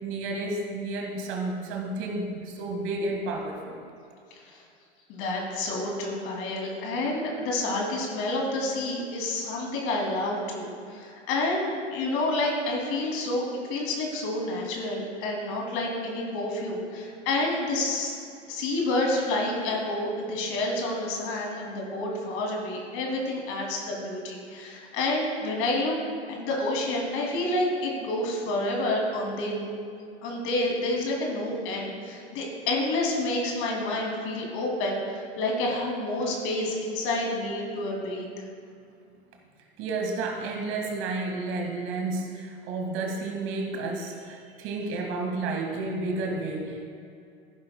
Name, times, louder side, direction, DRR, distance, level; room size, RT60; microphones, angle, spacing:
voice 1, 0.0-3.8 39.8-46.8, right 2 dB, 40° right, 2 dB, 1.9 m, -31 dB
voice 2, 5.1-13.4 13.7-18.2 18.5-25.9 26.3-29.7 30.2-38.4, left 2 dB, 45° left, -1 dB, 2.8 m, -29 dB
15.5 x 10.5 x 2.3 m, 2.4 s
figure-of-eight pair, 90°, 32 cm